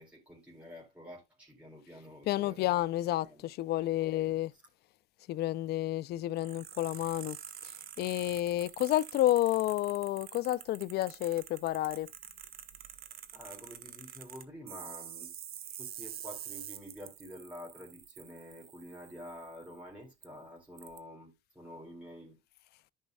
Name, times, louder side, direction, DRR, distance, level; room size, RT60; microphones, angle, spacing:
voice 1, 0.0-2.8 3.2-3.5 3.8-4.3 13.3-15.3 15.8-22.4, equal, 5° right, 4.0 m, -49 dB
voice 2, 2.3-4.5 5.3-7.4 7.6-7.7 8.0-12.1, left 15 dB, 75° left, 0.6 m, -30 dB
sound 1, 6.4-19.8 20.2-20.3 20.8-21.0, right 10 dB, 65° right, 1.3 m, -47 dB
14.5 x 5.6 x 2.3 m
cardioid pair, 110°, 17 cm